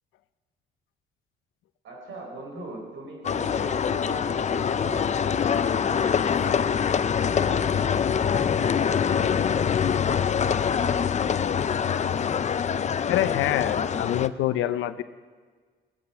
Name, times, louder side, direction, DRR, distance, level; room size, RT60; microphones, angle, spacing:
voice 1, 1.8-6.9 7.3-8.8 9.1-11.4, right 2 dB, 75° right, 0 dB, 4.2 m, -42 dB
sound 1, 3.2-14.3, left 7 dB, 35° left, 0.5 m, -24 dB
voice 2, 13.1-15.0, left 13 dB, 90° left, 12 dB, 0.7 m, -26 dB
20.0 x 9.0 x 5.7 m, 1.5 s
cardioid pair, 90°, 20 cm